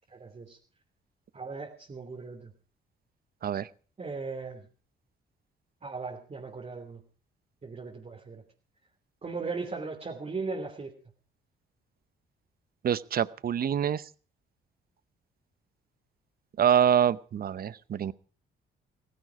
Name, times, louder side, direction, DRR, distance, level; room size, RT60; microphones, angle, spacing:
voice 1, 0.1-0.6 1.3-2.5 4.0-4.6 5.8-7.0 7.6-8.4 9.2-10.9, right 4 dB, 30° right, -1 dB, 3.1 m, -37 dB
voice 2, 12.8-14.0 16.6-18.1, right 9 dB, 50° right, 18 dB, 0.8 m, -25 dB
16.5 x 16.0 x 4.9 m, 0.39 s
cardioid pair, 90°, 20 cm